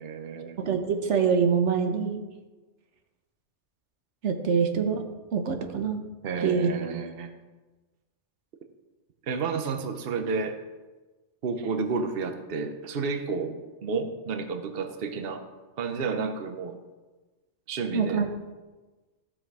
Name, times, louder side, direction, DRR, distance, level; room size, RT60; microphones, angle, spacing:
voice 1, 0.0-0.6 6.2-7.3 9.2-10.6 11.4-15.4 15.8-16.8 17.7-18.2, right 4 dB, 60° right, 7 dB, 1.0 m, -31 dB
voice 2, 0.6-2.2 4.2-5.0 5.3-6.0 6.4-6.7 17.9-18.3, right 6 dB, 85° right, 6 dB, 1.3 m, -25 dB
14.5 x 6.0 x 4.7 m, 1.2 s
omnidirectional pair, 1.2 m